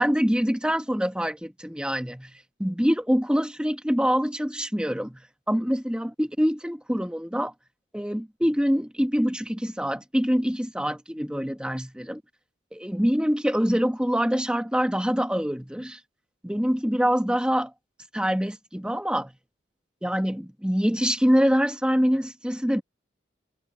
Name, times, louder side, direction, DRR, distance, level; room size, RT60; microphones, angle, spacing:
voice 1, 0.0-7.5 7.9-12.2 12.7-16.0 16.4-17.7 18.1-19.3 20.0-22.8, equal, 5° right, 1.3 m, -25 dB
head